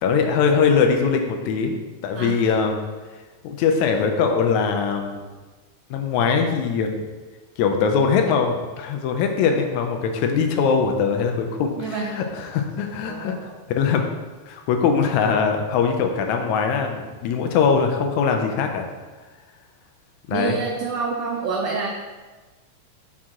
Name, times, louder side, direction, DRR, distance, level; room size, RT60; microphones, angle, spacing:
voice 1, 0.0-1.8 2.0-2.8 3.4-5.2 5.9-6.9 7.6-14.0 14.5-18.9 20.3-20.6, left 6 dB, 80° left, 4 dB, 1.9 m, -21 dB
voice 2, 2.1-2.6 11.8-12.2 13.0-13.6 20.3-21.9, right 4 dB, 85° right, 0 dB, 1.4 m, -27 dB
6.1 x 4.3 x 3.7 m, 1.3 s
omnidirectional pair, 3.5 m